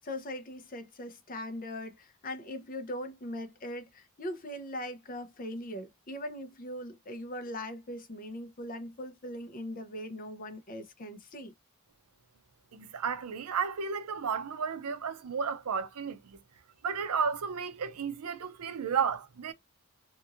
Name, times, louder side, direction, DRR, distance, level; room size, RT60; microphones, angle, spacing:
voice 1, 0.0-11.5, left 1 dB, 40° left, 0.6 m, -40 dB
voice 2, 12.7-16.4 16.8-19.5, right 6 dB, 90° right, 0.5 m, -33 dB
2.9 x 2.6 x 2.4 m
head